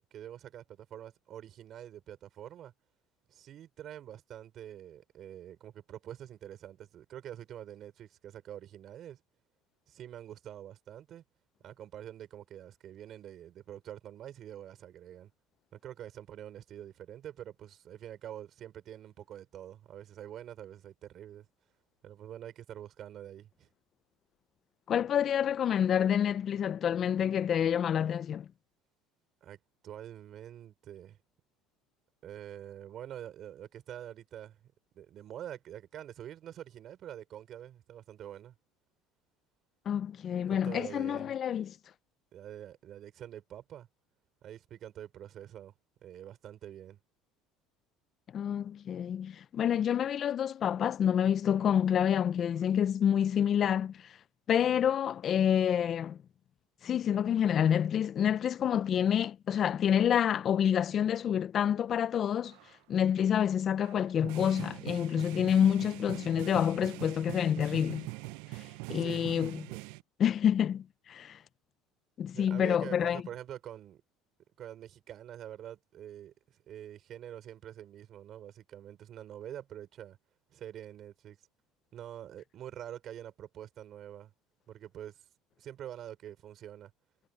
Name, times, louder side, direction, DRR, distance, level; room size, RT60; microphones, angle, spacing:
voice 1, 0.0-2.7 3.3-9.2 9.9-11.2 11.6-15.3 15.7-21.5 22.0-23.7 29.4-29.6 29.8-31.2 32.2-34.6 34.9-38.5 40.5-41.4 42.3-43.9 44.4-45.7 46.0-47.0 68.9-69.3 69.7-69.9 72.3-74.0 74.6-80.2 80.5-81.4 81.9-84.3 84.7-85.2 85.6-86.9, right 11 dB, 40° right, 5.5 m, -46 dB
voice 2, 24.9-28.5 39.9-41.7 48.3-54.1 54.5-56.2 56.8-62.6 62.9-68.1 68.9-69.6 70.2-71.4 72.2-73.2, left 9 dB, 30° left, 0.4 m, -28 dB
sound 1, 62.5-62.7 63.8-70.0, right 24 dB, 80° right, 0.4 m, -42 dB
cardioid pair, 165°, 0 cm